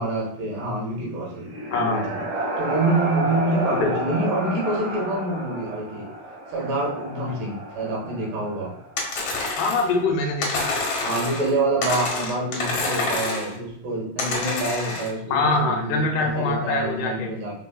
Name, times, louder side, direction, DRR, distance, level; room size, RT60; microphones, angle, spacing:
voice 1, 0.0-2.2 2.6-6.1 6.5-8.8 11.0-17.6, right 2 dB, 75° right, -2 dB, 2.8 m, -27 dB
sound 1, 1.1-8.9, right 1 dB, 60° right, 0.9 m, -31 dB
voice 2, 1.7-2.1 3.7-3.9 9.6-10.7 15.3-17.3, left 3 dB, 80° left, 2 dB, 2.0 m, -24 dB
sound 2, 9.0-9.9 10.4-11.5 11.8-13.5 14.2-15.1, left 3 dB, 65° left, 1.6 m, -27 dB
5.1 x 4.1 x 2.2 m, 0.74 s
omnidirectional pair, 4.0 m